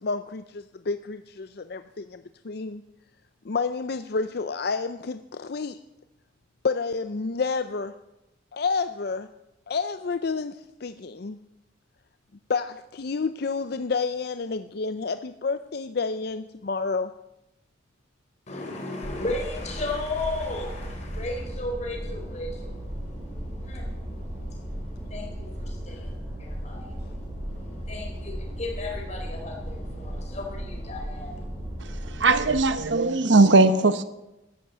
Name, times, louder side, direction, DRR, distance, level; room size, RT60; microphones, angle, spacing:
voice 1, 0.0-2.8 3.4-5.8 6.6-7.9 8.5-9.3 9.7-11.4 12.5-17.1, left 4 dB, 50° left, 11 dB, 0.5 m, -29 dB
voice 2, 18.5-31.4, left 2 dB, 35° left, 0 dB, 4.2 m, -36 dB
sound 1, 19.0-32.7, equal, 15° right, 3.6 m, -36 dB
voice 3, 32.1-34.0, right 3 dB, 65° right, 12 dB, 0.9 m, -19 dB
14.0 x 10.5 x 8.2 m, 0.93 s
head